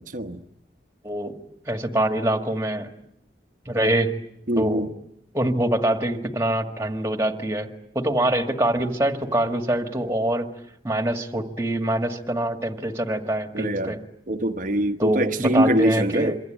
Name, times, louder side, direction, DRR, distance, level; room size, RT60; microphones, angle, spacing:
voice 1, 0.1-0.4 4.5-4.9 13.5-13.9 14.3-16.4, right 1 dB, 50° right, 1.1 m, -23 dB
voice 2, 1.0-1.3 1.7-2.9 3.7-4.1 4.6-4.9 5.3-7.7 8.0-10.5 10.8-14.0 15.0-16.4, right 1 dB, 15° right, 1.9 m, -24 dB
26.5 x 23.5 x 9.0 m
head